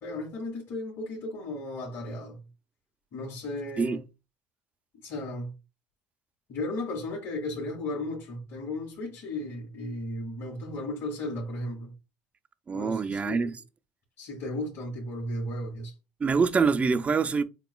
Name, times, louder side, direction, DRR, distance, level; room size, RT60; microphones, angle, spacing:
voice 1, 0.0-2.4 3.1-4.0 5.0-5.5 6.5-11.9 12.7-13.5 14.2-15.9, left 1 dB, 55° left, 2.4 m, -35 dB
voice 2, 12.7-13.5 16.2-17.4, right 5 dB, 25° right, 0.4 m, -25 dB
6.8 x 2.3 x 2.3 m
supercardioid pair, 105°, 5 cm